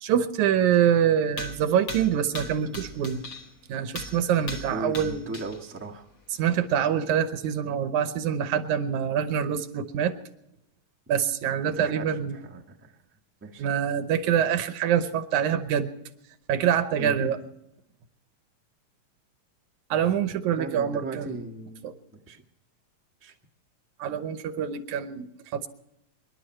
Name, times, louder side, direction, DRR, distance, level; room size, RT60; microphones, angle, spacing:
voice 1, 0.0-3.2 3.7-5.2 6.4-10.1 11.1-12.3 13.6-15.9 16.5-17.4 19.9-21.4 21.8-21.9 24.0-25.7, right 9 dB, 90° right, 10 dB, 2.5 m, -25 dB
sound 1, 0.7-0.8 1.3-3.6 4.0-5.6 6.1-6.2 7.1-7.2, left 1 dB, 40° left, 2.3 m, -39 dB
voice 2, 4.7-6.0 11.7-13.0 13.4-13.7 17.0-17.4 20.6-21.8 22.1-22.4 23.2-23.3, right 2 dB, 10° right, 0 dB, 0.7 m, -37 dB
26.5 x 11.5 x 4.4 m, 0.84 s
omnidirectional pair, 3.3 m